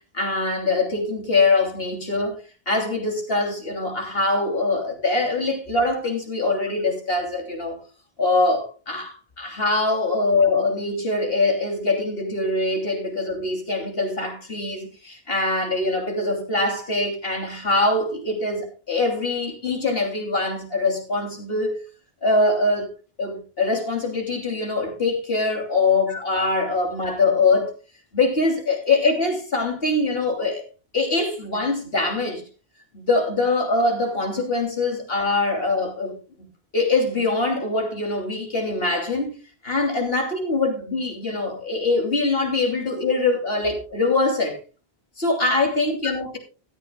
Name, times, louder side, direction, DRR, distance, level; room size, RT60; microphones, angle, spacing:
voice 1, 0.1-2.4 2.7-7.8 8.2-21.8 22.2-22.9 23.2-27.7 28.1-30.6 30.9-32.4 32.9-36.2 36.7-39.4 39.6-44.6 45.2-46.4, left 3 dB, 60° left, 3.4 m, -23 dB
16.5 x 13.0 x 2.3 m
omnidirectional pair, 1.1 m